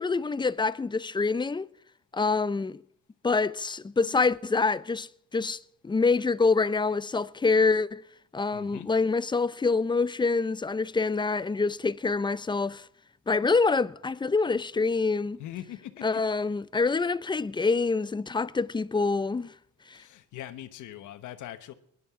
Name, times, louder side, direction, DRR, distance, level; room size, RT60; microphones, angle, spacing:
voice 1, 0.0-1.7 2.1-2.8 3.2-5.6 5.8-8.0 8.3-12.9 13.3-15.4 16.0-19.5 19.9-20.0, left 4 dB, 15° left, 0.4 m, -26 dB
voice 2, 8.5-8.9 15.4-16.2 19.9-21.7, left 12 dB, 80° left, 1.1 m, -41 dB
21.5 x 11.0 x 3.6 m
cardioid pair, 90°, 30 cm